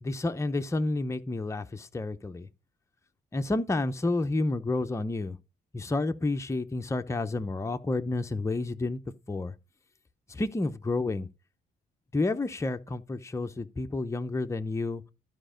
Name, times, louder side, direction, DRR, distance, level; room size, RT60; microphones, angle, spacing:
voice 1, 0.0-2.5 3.3-5.4 5.7-9.0 9.3-9.5 10.3-11.3 12.1-15.1, left 2 dB, 15° left, 0.7 m, -30 dB
11.5 x 5.1 x 5.1 m
cardioid pair, 90°, 20 cm